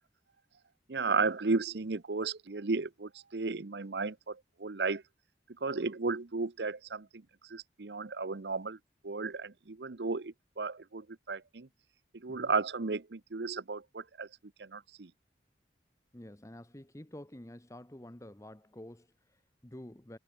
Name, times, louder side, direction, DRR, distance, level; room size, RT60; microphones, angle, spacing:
voice 1, 0.9-5.0 5.6-8.8 9.0-11.7 12.1-14.3 14.6-15.1, right 4 dB, 75° right, 0.8 m, -34 dB
voice 2, 16.1-20.2, left 1 dB, 15° left, 1.1 m, -49 dB
head